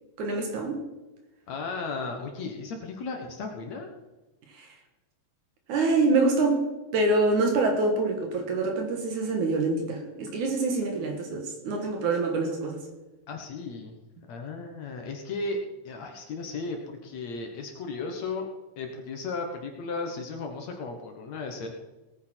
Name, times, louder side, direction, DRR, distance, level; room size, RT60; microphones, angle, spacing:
voice 1, 0.2-0.9 4.5-4.7 5.7-12.9, right 3 dB, 65° right, 4 dB, 2.9 m, -26 dB
voice 2, 1.5-3.9 13.3-13.9 14.3-15.6 15.8-18.5 18.8-21.7, left 3 dB, 60° left, 3 dB, 2.2 m, -35 dB
19.0 x 9.3 x 4.5 m, 1.1 s
omnidirectional pair, 4.0 m